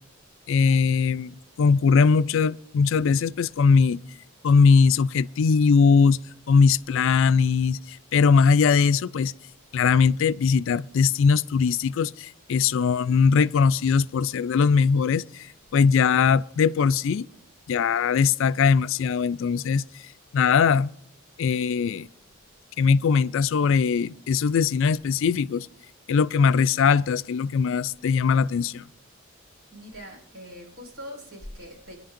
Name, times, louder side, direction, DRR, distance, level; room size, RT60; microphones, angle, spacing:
voice 1, 0.5-1.3 1.6-4.0 4.4-6.2 6.5-9.3 9.7-15.5 15.7-17.3 17.7-19.8 20.3-20.9 21.4-22.1 22.8-25.7 26.1-28.8, left 5 dB, 65° left, 0.4 m, -20 dB
voice 2, 29.7-32.0, equal, 75° right, 4.6 m, -42 dB
23.5 x 10.5 x 2.6 m
head